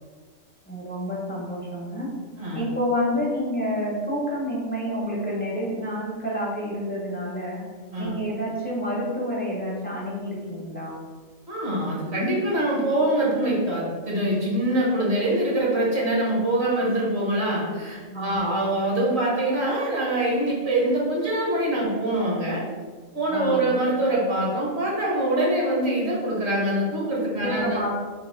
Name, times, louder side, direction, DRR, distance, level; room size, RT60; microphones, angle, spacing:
voice 1, 0.7-2.1 2.5-7.6 8.0-11.0 18.1-18.6 23.3-23.7 27.4-27.9, equal, 10° left, -5 dB, 0.6 m, -29 dB
voice 2, 11.5-22.6 23.1-27.8, right 1 dB, 55° right, -5 dB, 1.4 m, -24 dB
3.9 x 2.7 x 3.8 m, 1.5 s
omnidirectional pair, 1.3 m